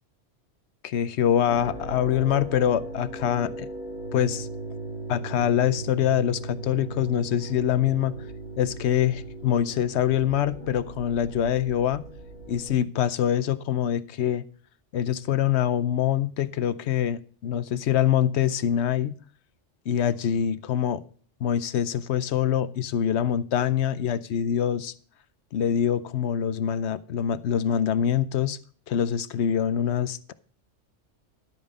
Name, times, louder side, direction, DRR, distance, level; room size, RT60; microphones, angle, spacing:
voice 1, 0.8-3.7 4.1-4.5 5.1-8.1 8.6-12.0 12.5-14.4 14.9-19.1 19.9-21.0 21.4-24.9 25.5-28.6 28.9-30.3, left 9 dB, 70° left, 15 dB, 0.9 m, -24 dB
sound 1, 1.5-12.7, right 2 dB, 85° right, 7.0 m, -38 dB
12.0 x 8.6 x 3.9 m, 0.44 s
omnidirectional pair, 1.2 m